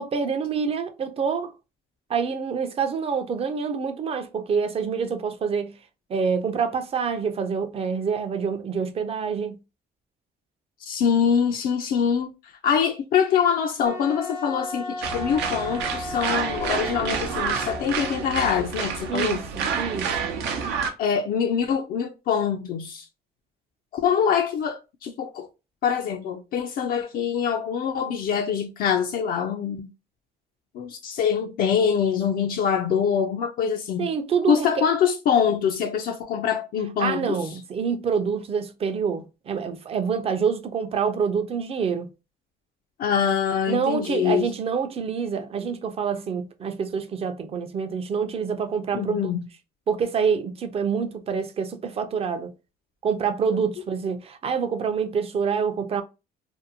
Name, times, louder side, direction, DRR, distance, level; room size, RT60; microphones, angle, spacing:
voice 1, 0.0-1.5 2.1-5.7 6.1-9.6 19.1-20.3 34.0-34.8 37.0-42.1 43.7-49.3 49.9-52.5 53.0-56.0, right 6 dB, 35° right, 0.5 m, -26 dB
voice 2, 10.8-19.4 21.0-23.1 23.9-25.5 25.8-29.9 30.7-34.1 34.5-37.5 43.0-44.5 48.9-49.5, left 7 dB, 60° left, 0.4 m, -24 dB
Wind instrument woodwind instrument, 13.8-19.3, left 1 dB, 90° left, 0.8 m, -36 dB
sound 1, 15.0-20.9, right 6 dB, 80° right, 0.6 m, -29 dB
2.6 x 2.1 x 2.7 m
cardioid pair, 110°, 17 cm